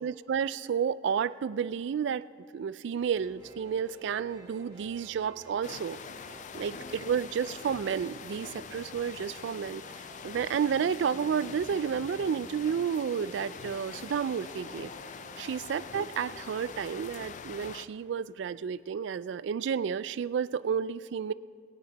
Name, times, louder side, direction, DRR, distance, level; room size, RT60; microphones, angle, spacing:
voice 1, 0.0-2.3 2.5-6.0 6.5-9.8 10.2-14.9 15.4-21.3, right 7 dB, 65° right, 17 dB, 0.3 m, -31 dB
sound 1, 2.9-18.2, right 1 dB, 20° right, 1.5 m, -53 dB
sound 2, 5.6-17.9, left 6 dB, 40° left, 0.4 m, -44 dB
19.0 x 9.2 x 4.0 m, 2.4 s
head